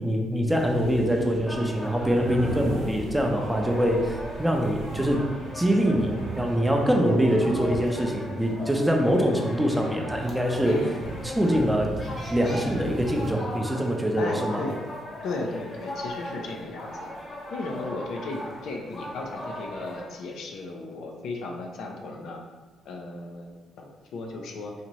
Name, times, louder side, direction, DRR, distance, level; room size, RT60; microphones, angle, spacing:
voice 1, 0.0-5.2 5.5-10.8 11.4-11.9 12.3-14.6, equal, 5° right, 1 dB, 0.5 m, -24 dB
sound 1, 0.5-13.3, right 2 dB, 85° right, 0.4 m, -38 dB
sound 2, 1.5-20.1, left 1 dB, 40° left, 1.0 m, -39 dB
voice 2, 10.6-11.0 14.2-14.8 15.2-17.1 17.5-22.4 22.9-23.5 23.8-24.7, left 2 dB, 75° left, 1 dB, 0.5 m, -35 dB
4.1 x 2.5 x 3.0 m, 1.3 s
cardioid pair, 90°, 0 cm